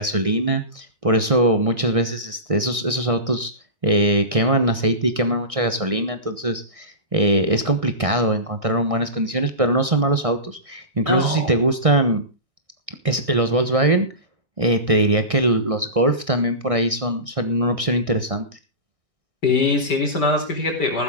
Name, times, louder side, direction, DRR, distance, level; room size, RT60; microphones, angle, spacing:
voice 1, 0.0-3.5 3.8-12.2 13.0-14.1 14.6-18.4, right 1 dB, 25° right, 9 dB, 1.1 m, -21 dB
voice 2, 11.1-11.5 19.4-21.0, left 3 dB, 85° left, 3 dB, 4.7 m, -22 dB
15.0 x 12.0 x 3.7 m, 0.28 s
omnidirectional pair, 1.8 m